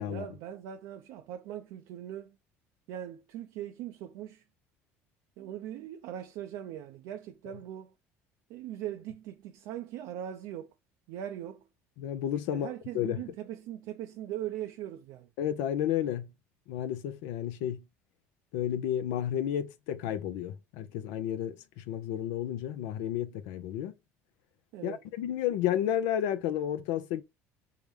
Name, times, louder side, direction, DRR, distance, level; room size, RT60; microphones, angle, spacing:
voice 1, 0.1-2.3 2.9-4.4 5.4-7.9 8.5-10.7 11.1-11.6 12.5-15.3 24.7-25.0, right 11 dB, 70° right, 0.4 m, -40 dB
voice 2, 12.0-12.7 12.9-13.2 15.4-16.3 16.7-17.8 18.5-23.9 24.8-27.2, left 10 dB, 75° left, 0.4 m, -31 dB
4.6 x 2.1 x 3.3 m
hypercardioid pair, 80°, 7 cm